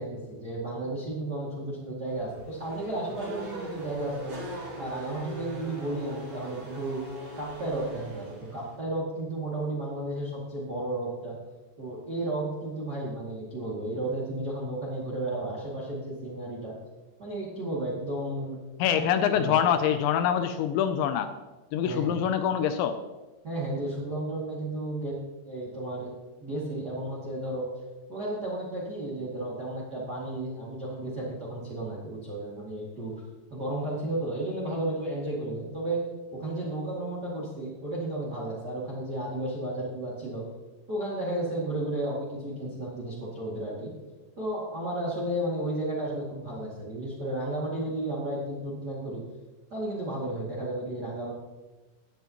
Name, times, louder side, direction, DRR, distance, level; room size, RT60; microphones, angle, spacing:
voice 1, 0.0-4.4 4.8-7.0 7.4-11.4 11.8-16.7 17.2-18.6 18.9-19.0 19.3-19.7 21.8-22.2 23.4-25.2 25.4-26.1 26.4-27.7 28.1-33.1 33.5-36.0 36.3-40.4 40.9-43.9 44.4-49.2 49.7-51.3, right 1 dB, 35° right, -6 dB, 1.6 m, -33 dB
Race car auto racing / Accelerating revving vroom, 2.1-8.8, right 1 dB, 50° right, 4.0 m, -41 dB
voice 2, 18.8-21.3 21.7-23.0, left 9 dB, 80° left, 9 dB, 2.7 m, -25 dB
17.0 x 9.5 x 3.0 m, 1.2 s
omnidirectional pair, 5.6 m